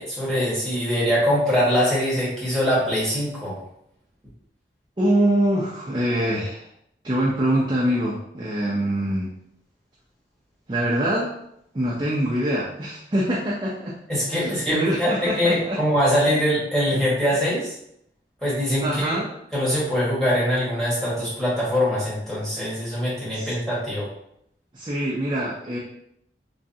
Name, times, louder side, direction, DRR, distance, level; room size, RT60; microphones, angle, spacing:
voice 1, 0.0-3.5 14.1-17.7 18.4-19.2 19.5-24.1, equal, 5° left, -8 dB, 1.4 m, -23 dB
voice 2, 5.0-6.7 7.0-9.3 10.7-11.3 11.7-14.0 14.3-15.8 18.8-19.3 23.3-23.5 24.7-25.8, right 1 dB, 25° right, -5 dB, 0.5 m, -24 dB
3.6 x 3.1 x 2.7 m, 0.75 s
head